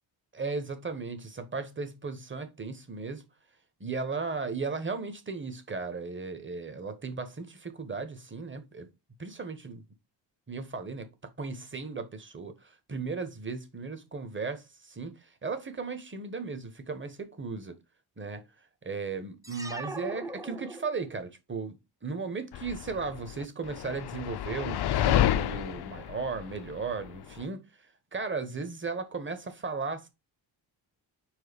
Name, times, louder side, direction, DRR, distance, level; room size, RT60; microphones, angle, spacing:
voice 1, 0.3-3.2 3.8-8.9 9.2-9.8 10.5-11.1 11.4-17.7 18.2-18.4 18.8-27.6 28.1-30.1, right 4 dB, 25° right, 1.2 m, -36 dB
sound 1, 19.4-21.3, right 2 dB, 10° right, 0.7 m, -40 dB
sound 2, 22.5-27.4, left 12 dB, 60° left, 0.6 m, -29 dB
4.7 x 3.8 x 5.2 m
cardioid pair, 110°, 45 cm